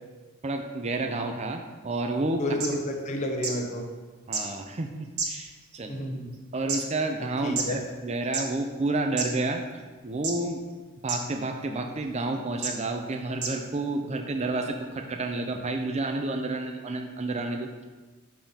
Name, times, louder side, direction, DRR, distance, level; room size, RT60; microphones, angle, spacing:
voice 1, 0.4-2.4 4.3-5.9 6.5-9.6 10.0-10.6 11.0-17.8, right 2 dB, 30° right, 5 dB, 0.4 m, -30 dB
sound 1, 2.3-2.4 2.6-2.7 3.4-3.5 4.3-4.4 5.2-5.6 6.3-6.8 7.6-7.7 8.2-8.4 9.2-9.3 10.2-10.5 11.1-11.2 12.0-12.1 12.6-12.7 13.4-13.5 14.3-14.4, right 4 dB, 80° right, 1.0 m, -29 dB
voice 2, 2.4-3.9 5.9-6.3 7.4-7.8, left 1 dB, 35° left, 2 dB, 0.8 m, -30 dB
7.0 x 3.7 x 5.6 m, 1.3 s
head